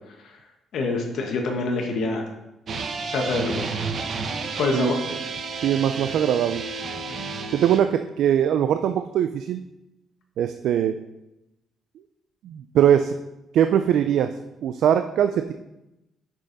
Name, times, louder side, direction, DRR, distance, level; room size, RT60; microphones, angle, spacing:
voice 1, 0.1-0.4 0.7-2.3 3.1-3.8 4.6-5.0 7.1-7.2, left 3 dB, 70° left, 2 dB, 1.4 m, -26 dB
sound 1, 2.7-7.8, right 4 dB, 55° right, 0.9 m, -31 dB
voice 2, 5.6-6.6 7.5-9.6 10.4-11.0 12.4-13.1 13.5-14.3 14.6-15.5, right 9 dB, 75° right, 8 dB, 0.4 m, -21 dB
6.4 x 6.3 x 4.1 m, 0.93 s
cardioid pair, 90°, 0 cm